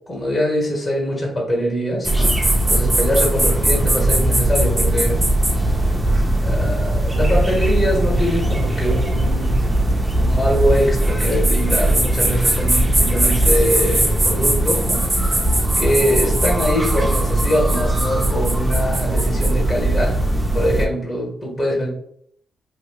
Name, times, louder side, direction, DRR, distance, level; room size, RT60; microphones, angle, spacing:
voice 1, 0.1-5.2 6.4-9.6 10.2-15.4 15.7-20.2 20.5-21.9, equal, 25° left, -3 dB, 1.4 m, -23 dB
sound 1, 2.0-20.9, right 1 dB, 20° right, 0.7 m, -19 dB
3.0 x 2.6 x 2.3 m, 0.65 s
cardioid pair, 65°, 0 cm